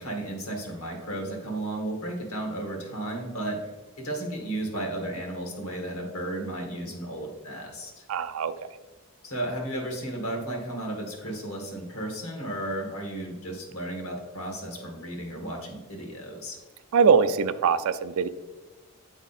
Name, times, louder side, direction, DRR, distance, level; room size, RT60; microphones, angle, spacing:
voice 1, 0.0-3.6 4.0-8.0 9.2-16.6, right 1 dB, 80° left, 2 dB, 1.5 m, -34 dB
voice 2, 8.1-8.5 16.9-18.3, right 6 dB, 70° right, 13 dB, 0.4 m, -22 dB
8.7 x 3.6 x 4.1 m, 1.2 s
head